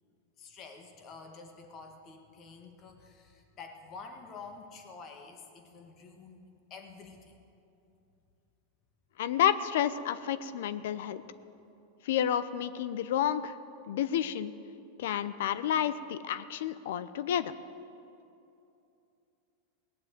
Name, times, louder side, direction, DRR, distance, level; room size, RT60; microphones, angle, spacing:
voice 1, 0.4-7.4, left 4 dB, 35° left, 4 dB, 1.8 m, -49 dB
voice 2, 9.2-11.2 12.0-13.5 13.9-14.5 15.0-17.5, left 10 dB, 75° left, 15 dB, 0.7 m, -30 dB
18.5 x 7.6 x 9.2 m, 2.7 s
supercardioid pair, 145°, 0 cm